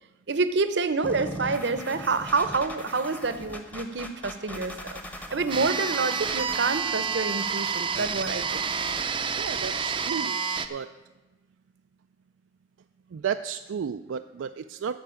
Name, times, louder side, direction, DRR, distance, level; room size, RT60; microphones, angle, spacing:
voice 1, 0.3-5.0 5.3-8.7, right 4 dB, 60° right, 12 dB, 0.8 m, -27 dB
sound 1, 1.0-9.0, equal, 10° left, 1.0 m, -41 dB
sound 2, 5.5-10.7, right 6 dB, 25° right, 0.5 m, -29 dB
voice 2, 9.4-10.4 10.7-10.9 13.1-15.0, right 7 dB, 85° right, 8 dB, 0.4 m, -33 dB
13.5 x 4.6 x 8.8 m, 1.2 s
head